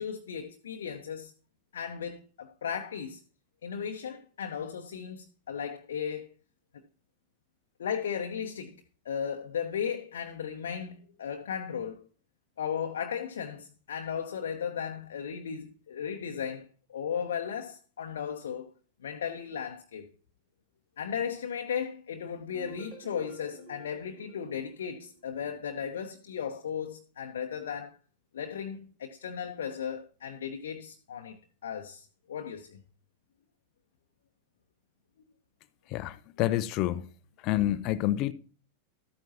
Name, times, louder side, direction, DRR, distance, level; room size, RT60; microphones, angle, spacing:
voice 1, 0.0-1.3 1.7-3.2 3.6-6.3 7.8-12.1 12.6-18.7 19.0-20.1 21.0-28.0 28.3-32.8, left 7 dB, 65° left, 1.0 m, -36 dB
sound 1, 22.5-25.5, right 1 dB, 35° right, 4.3 m, -49 dB
voice 2, 35.9-37.0 37.4-38.3, left 14 dB, 40° left, 0.8 m, -28 dB
13.0 x 9.2 x 2.9 m
figure-of-eight pair, 90°, 0 cm